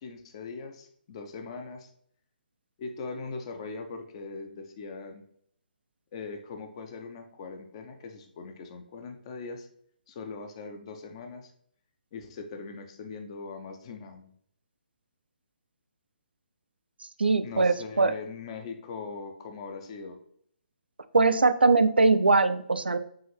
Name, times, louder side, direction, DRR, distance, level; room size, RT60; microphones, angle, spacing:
voice 1, 0.0-1.9 2.8-5.2 6.1-9.7 10.1-11.5 12.1-14.3 17.4-20.2, left 4 dB, 35° left, 6 dB, 0.5 m, -40 dB
voice 2, 17.2-18.2 21.1-23.0, right 3 dB, 80° right, 11 dB, 0.4 m, -21 dB
5.5 x 2.5 x 3.2 m, 0.66 s
figure-of-eight pair, 135°, 5 cm